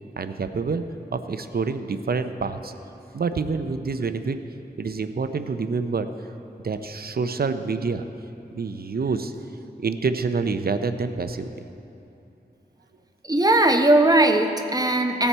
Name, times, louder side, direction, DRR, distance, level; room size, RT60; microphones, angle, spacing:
voice 1, 0.2-0.8 1.1-2.7 3.1-4.4 4.8-6.1 6.6-8.1 8.5-9.3 9.8-11.5, right 4 dB, 60° right, 10 dB, 0.5 m, -27 dB
voice 2, 13.2-15.3, right 1 dB, 20° right, 5 dB, 0.9 m, -19 dB
17.5 x 7.0 x 4.5 m, 2.8 s
wide cardioid pair, 60°, 18 cm